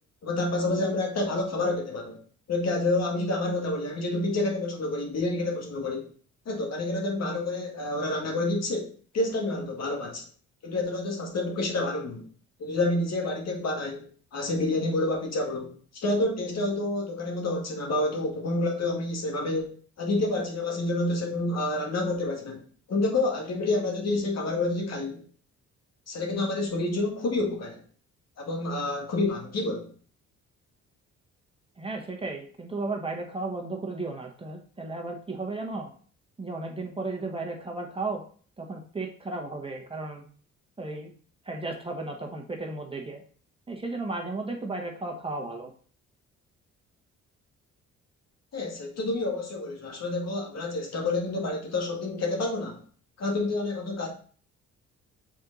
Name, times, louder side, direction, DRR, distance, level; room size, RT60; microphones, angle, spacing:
voice 1, 0.2-2.2 2.5-6.1 6.5-8.9 9.1-10.3 10.6-12.3 12.6-14.1 14.3-15.7 15.9-19.7 20.0-22.6 22.9-25.2 26.1-27.8 28.4-29.9 48.5-52.8 53.2-54.1, left 2 dB, 60° left, 1 dB, 2.1 m, -28 dB
voice 2, 31.8-35.9 36.4-38.2 38.6-40.2 40.8-41.1 41.4-43.2 43.7-45.7, right 3 dB, 20° right, 1 dB, 1.3 m, -34 dB
6.3 x 4.4 x 4.0 m, 0.44 s
cardioid pair, 90°, 30 cm